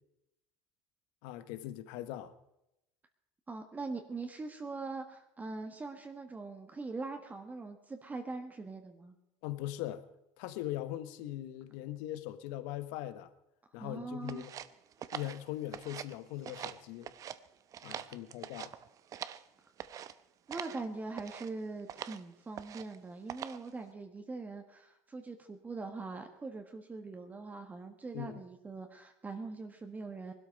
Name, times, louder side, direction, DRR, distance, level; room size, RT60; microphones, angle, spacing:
voice 1, 1.2-2.3 9.4-10.0 10.4-13.3 13.7-14.5 15.1-17.1 17.8-18.7 28.1-28.4, left 13 dB, 80° left, 1.1 m, -40 dB
voice 2, 3.5-9.2 13.7-14.4 17.9-18.2 20.5-30.3, right 3 dB, 20° right, 1.5 m, -42 dB
sound 1, 14.3-16.2 16.4-17.4 17.7-19.5 19.8-20.1 20.5-20.8 21.1-21.5 21.9-22.2 22.5-23.0 23.3-23.7, right 10 dB, 45° right, 0.7 m, -44 dB
19.5 x 12.5 x 5.3 m
supercardioid pair, 100°, 8 cm